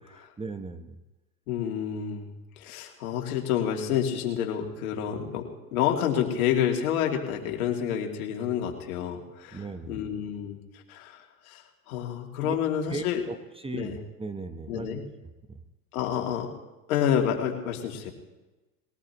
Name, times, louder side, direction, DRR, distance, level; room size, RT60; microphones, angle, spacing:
voice 1, 0.1-1.0 9.5-10.0 12.4-12.5 12.9-13.4 13.6-15.0 15.5-15.6, right 3 dB, 15° right, 9 dB, 1.0 m, -37 dB
voice 2, 1.5-2.3 2.6-10.6 10.9-13.2 13.7-14.0 14.7-15.0 15.9-16.5 16.9-18.1, left 9 dB, 85° left, 1 dB, 2.7 m, -29 dB
21.0 x 18.5 x 3.0 m, 1.1 s
supercardioid pair, 100°, 42 cm